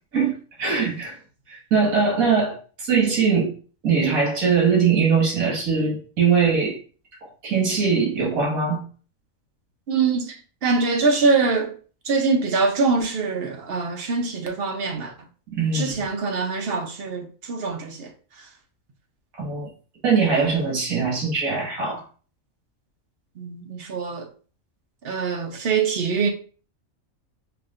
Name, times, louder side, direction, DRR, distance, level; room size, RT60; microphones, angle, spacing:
voice 1, 0.6-1.2 1.5-3.5 3.8-6.8 7.2-8.8 15.5-15.9 19.4-19.7 20.0-22.0, right 5 dB, 80° right, 2.0 m, -21 dB
voice 2, 9.9-11.7 12.0-15.3 15.7-18.5 23.4-24.3 25.0-26.3, right 4 dB, 55° right, 0.8 m, -24 dB
4.8 x 2.6 x 2.4 m
omnidirectional pair, 1.4 m